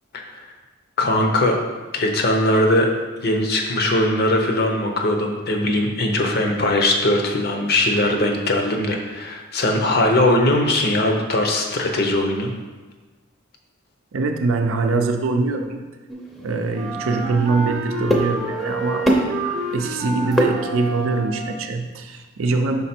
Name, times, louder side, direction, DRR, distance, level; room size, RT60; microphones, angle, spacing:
voice 1, 1.0-1.6 1.9-2.9 3.2-12.5, left 1 dB, 50° left, 3 dB, 0.7 m, -20 dB
voice 2, 14.1-15.8 16.4-19.1 19.4-22.8, right 3 dB, 80° right, 5 dB, 0.5 m, -23 dB
sound 1, 16.1-21.2, equal, ahead, 0.6 m, -26 dB
Wind instrument woodwind instrument, 16.7-21.8, right 3 dB, 35° right, 0.7 m, -29 dB
5.4 x 4.1 x 4.3 m, 1.3 s
head